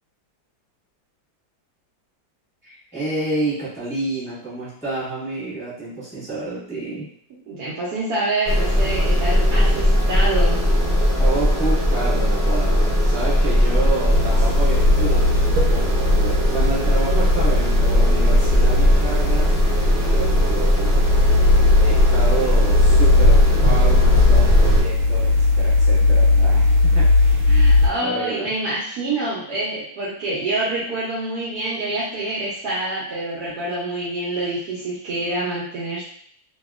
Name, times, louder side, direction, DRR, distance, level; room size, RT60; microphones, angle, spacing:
voice 1, 2.6-7.1 11.2-19.5 19.9-21.3 21.8-27.4 28.0-28.5, right 3 dB, 5° left, -10 dB, 1.1 m, -29 dB
voice 2, 7.5-10.6 27.4-36.0, right 2 dB, 70° right, -7 dB, 1.0 m, -26 dB
sound 1, 8.4-24.8, equal, 30° right, 0.9 m, -18 dB
sound 2, 14.1-27.9, left 3 dB, 85° right, 1.3 m, -19 dB
2.8 x 2.7 x 2.3 m, 0.64 s
omnidirectional pair, 2.1 m